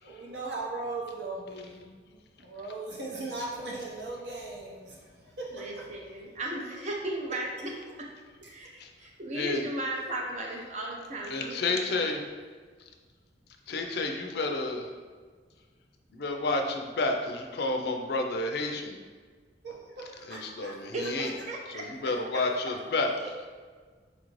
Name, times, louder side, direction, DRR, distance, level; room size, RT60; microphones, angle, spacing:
voice 1, 0.0-6.1 19.6-21.1, right 2 dB, 70° right, -3 dB, 0.8 m, -39 dB
voice 2, 5.5-7.7 8.5-8.7 9.0-11.8 20.7-22.1 23.0-23.5, right 1 dB, 40° right, -1 dB, 0.5 m, -36 dB
voice 3, 11.3-12.2 13.7-14.9 16.1-19.0 20.3-21.3 21.7-23.1, left 3 dB, 60° left, 3 dB, 0.4 m, -30 dB
4.1 x 2.5 x 3.0 m, 1.5 s
head